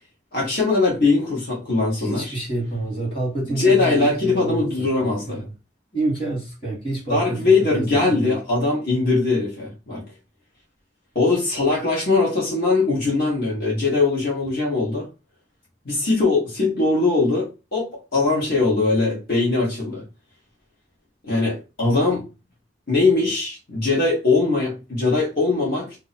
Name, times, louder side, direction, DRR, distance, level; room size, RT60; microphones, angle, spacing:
voice 1, 0.3-2.3 3.4-5.4 7.1-10.1 11.1-15.1 15.8-20.0 21.2-22.3 22.9-25.9, left 3 dB, 55° left, 1.2 m, -21 dB
voice 2, 2.0-5.5 5.9-8.4, right 2 dB, 30° left, 1.6 m, -28 dB
2.8 x 2.1 x 4.0 m
head